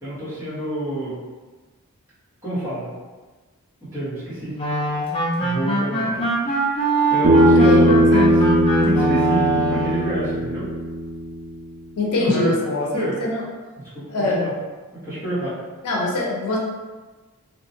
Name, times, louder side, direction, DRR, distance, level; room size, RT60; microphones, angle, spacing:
voice 1, 0.0-1.2 2.4-2.9 3.8-4.5 5.4-6.8 7.1-8.3 8.7-10.7 12.2-13.3 14.2-14.5 15.0-15.5, equal, 15° right, -13 dB, 1.3 m, -27 dB
sound 1, 4.6-10.1, right 2 dB, 25° left, 0.4 m, -23 dB
Bass guitar, 7.2-11.6, right 1 dB, 45° right, 0.4 m, -18 dB
voice 2, 12.0-12.5 12.9-13.4 14.1-14.5 15.8-16.6, left 2 dB, 85° left, -3 dB, 0.6 m, -23 dB
2.8 x 2.3 x 2.7 m, 1.3 s
head